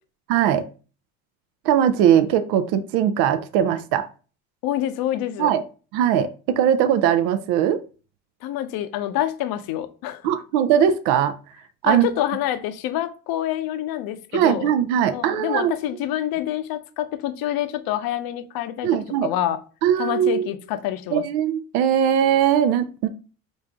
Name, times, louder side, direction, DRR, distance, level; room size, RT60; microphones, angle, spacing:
voice 1, 0.3-0.6 1.6-4.1 5.4-5.6 5.9-7.8 10.2-11.4 11.8-12.1 14.3-15.7 18.8-19.3 19.8-20.5 21.1-23.1, right 9 dB, 60° right, 0.6 m, -20 dB
voice 2, 4.6-5.5 8.4-10.3 11.8-14.7 15.1-19.6 20.0-21.2, left 12 dB, 55° left, 0.7 m, -27 dB
5.1 x 2.6 x 3.5 m
hypercardioid pair, 80°, 44 cm